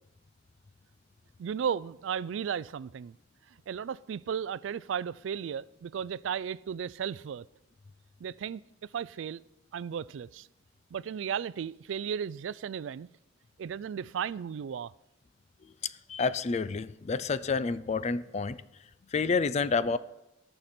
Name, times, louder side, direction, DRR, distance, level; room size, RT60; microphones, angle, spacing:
voice 1, 1.4-3.2 3.5-7.5 8.2-9.4 9.7-10.5 10.9-13.1 13.6-14.9, right 7 dB, 75° right, 0.3 m, -35 dB
voice 2, 16.1-18.6 19.1-20.0, left 4 dB, 35° left, 0.4 m, -29 dB
17.5 x 6.7 x 4.3 m
head